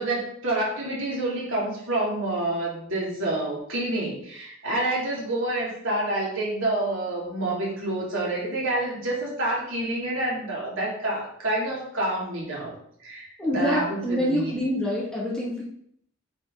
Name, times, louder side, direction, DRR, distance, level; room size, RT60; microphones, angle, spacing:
voice 1, 0.0-12.7 13.0-14.5, right 1 dB, 60° right, -4 dB, 3.3 m, -28 dB
voice 2, 13.4-15.6, equal, 5° left, -6 dB, 2.3 m, -26 dB
9.0 x 5.8 x 4.1 m, 0.67 s
head